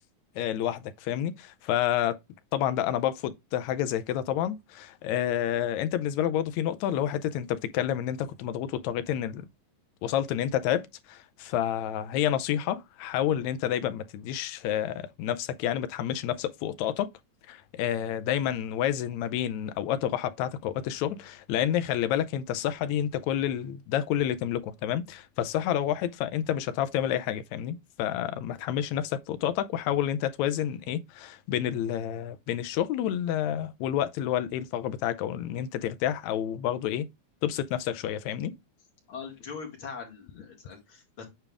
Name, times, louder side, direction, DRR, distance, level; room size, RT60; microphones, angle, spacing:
voice 1, 0.4-2.2 2.5-9.5 10.0-17.1 17.5-37.1 37.4-38.5, left 11 dB, 80° left, 1.9 m, -29 dB
voice 2, 39.1-41.2, left 6 dB, 50° left, 2.6 m, -41 dB
9.0 x 3.4 x 3.4 m
omnidirectional pair, 3.4 m